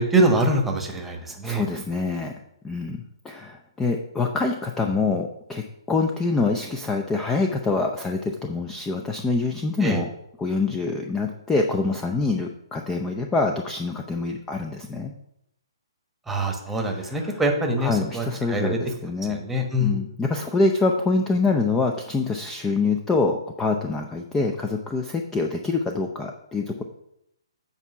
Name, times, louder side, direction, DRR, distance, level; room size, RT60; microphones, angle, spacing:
voice 1, 0.0-1.6 9.8-10.0 16.3-18.7 19.3-20.0, right 1 dB, 5° right, 3 dB, 1.2 m, -24 dB
voice 2, 0.9-2.3 2.6-10.1 10.4-15.1 16.9-17.4 17.8-19.4 19.8-26.8, left 3 dB, 10° left, 3 dB, 0.5 m, -25 dB
8.2 x 4.5 x 5.5 m, 0.80 s
figure-of-eight pair, 130°, 3 cm